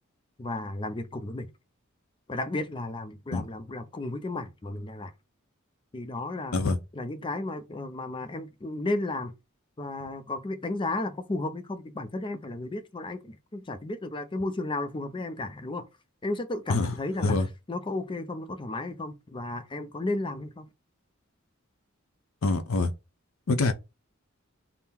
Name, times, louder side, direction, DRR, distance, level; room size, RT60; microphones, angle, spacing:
voice 1, 0.4-1.5 2.3-5.1 5.9-6.6 6.9-9.3 9.8-15.8 16.2-17.4 17.7-20.7, left 2 dB, 25° left, 0.5 m, -33 dB
voice 2, 16.7-17.5 22.4-22.9 23.5-23.7, left 3 dB, 85° left, 0.7 m, -25 dB
3.6 x 2.1 x 4.2 m
head